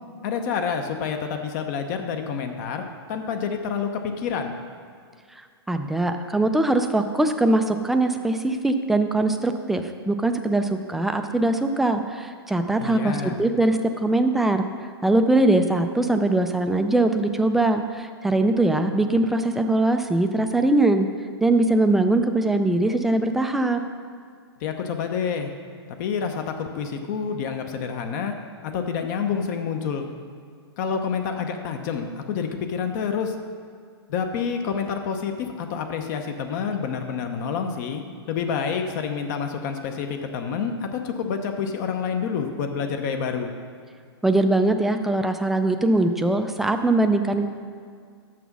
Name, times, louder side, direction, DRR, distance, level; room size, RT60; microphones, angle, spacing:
voice 1, 0.2-2.8 3.1-4.6 12.8-13.5 24.6-25.5 26.0-28.3 28.6-30.1 30.8-33.3 34.1-38.0 38.3-43.5, left 6 dB, 45° left, 6 dB, 0.8 m, -28 dB
voice 2, 5.7-14.7 15.0-21.1 21.4-23.8 44.2-47.5, right 2 dB, ahead, 6 dB, 0.3 m, -21 dB
7.0 x 6.1 x 6.0 m, 2.1 s
hypercardioid pair, 135°, 14 cm